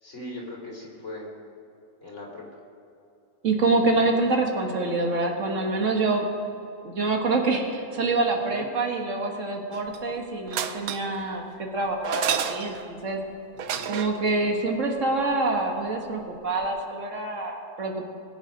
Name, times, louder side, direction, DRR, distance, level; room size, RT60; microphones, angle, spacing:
voice 1, 0.0-1.3 2.0-2.4 8.4-8.7 13.5-14.0 14.4-14.5, left 1 dB, 50° left, -3 dB, 3.5 m, -40 dB
voice 2, 3.4-6.3 6.8-13.2 13.9-18.1, right 3 dB, 60° right, 2 dB, 1.8 m, -26 dB
sound 1, 9.7-10.1 10.5-11.2 12.0-12.9 13.6-14.2 16.4-16.5 16.6-16.7, right 9 dB, 80° right, 1.2 m, -30 dB
20.0 x 8.2 x 5.1 m, 2.7 s
omnidirectional pair, 1.5 m